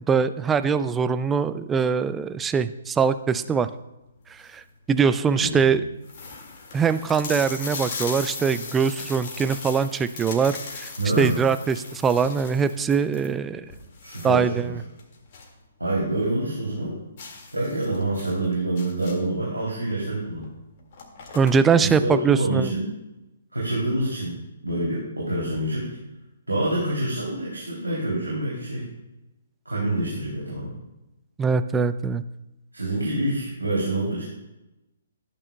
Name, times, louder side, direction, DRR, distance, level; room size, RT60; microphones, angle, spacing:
voice 1, 0.1-3.7 4.5-4.6 4.9-5.8 6.7-10.9 11.2-13.6 14.2-14.8 21.3-22.7 31.4-32.2, right 6 dB, 10° right, 12 dB, 0.4 m, -22 dB
sound 1, 4.2-4.7 5.3-5.4 5.6-5.7 6.0-15.6 15.9-16.0 16.4-16.5 17.2-19.4 20.4-20.5 20.8-21.9, left 4 dB, 40° left, 2.0 m, -38 dB
voice 2, 5.3-5.8 11.0-11.4 14.0-14.7 15.8-17.0 17.5-20.5 21.7-22.9 23.5-26.0 26.5-28.9 29.6-30.7 32.7-34.2, right 1 dB, 85° right, -5 dB, 3.0 m, -27 dB
15.5 x 8.9 x 2.3 m, 0.98 s
figure-of-eight pair, 125°, 0 cm